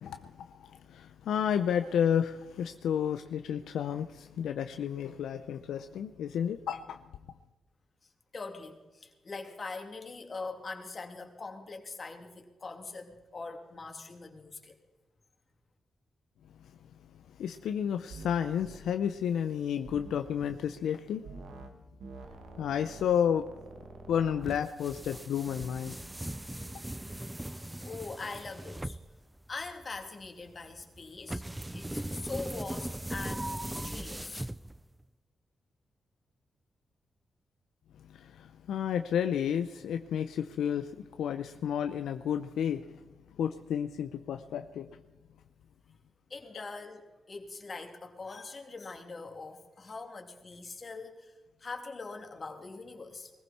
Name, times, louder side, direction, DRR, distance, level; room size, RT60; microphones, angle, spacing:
voice 1, 0.0-7.0 17.4-21.3 22.6-23.5 24.1-26.0 38.1-42.9 43.4-44.9, left 8 dB, 85° left, 9 dB, 0.5 m, -31 dB
voice 2, 8.3-14.7 27.8-29.0 29.5-31.4 31.7-34.5 46.3-53.3, left 3 dB, 50° left, 4 dB, 2.7 m, -42 dB
sound 1, 18.1-18.3 18.6-18.8 19.8-20.6 21.2-21.7 22.0-24.5, right 3 dB, 85° right, 1.7 m, -47 dB
sound 2, 24.4-35.0, right 1 dB, 15° right, 0.5 m, -39 dB
21.0 x 15.0 x 4.2 m, 1.2 s
supercardioid pair, 55°, 0 cm